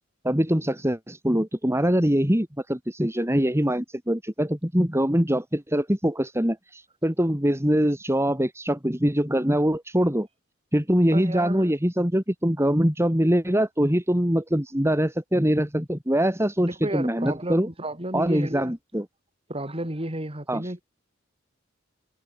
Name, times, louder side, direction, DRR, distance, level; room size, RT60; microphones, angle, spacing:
voice 1, 0.2-10.3 10.7-17.7 18.1-19.1 20.5-20.7, equal, 15° right, 4.0 m, -23 dB
voice 2, 11.1-11.7 16.6-18.8 19.5-20.8, right 1 dB, 30° right, 7.2 m, -32 dB
head